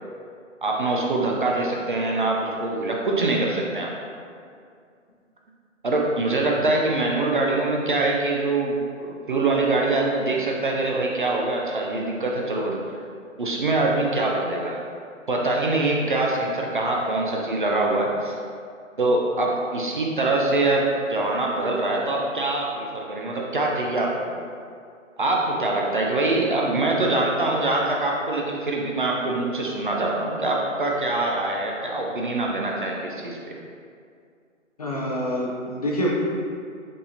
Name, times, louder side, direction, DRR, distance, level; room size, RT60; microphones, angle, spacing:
voice 1, 0.6-3.9 5.8-12.8 13.4-14.8 15.3-18.3 19.0-24.3 25.2-33.5, right 2 dB, 40° right, -1 dB, 0.5 m, -24 dB
voice 2, 34.8-36.1, equal, 30° left, -5 dB, 0.5 m, -26 dB
5.1 x 3.4 x 2.7 m, 2.3 s
figure-of-eight pair, 140°, 40 cm